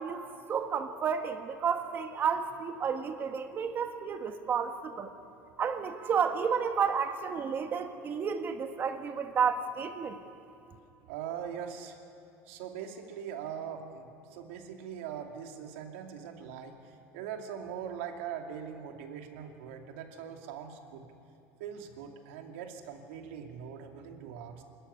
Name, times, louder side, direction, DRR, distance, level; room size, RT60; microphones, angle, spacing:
voice 1, 0.0-5.1 5.6-10.2, right 6 dB, 35° right, 7 dB, 1.5 m, -31 dB
voice 2, 11.1-12.0 12.5-21.1 21.6-24.6, right 8 dB, 85° right, 4 dB, 2.5 m, -41 dB
26.0 x 14.0 x 9.8 m, 2.9 s
supercardioid pair, 135°, 6 cm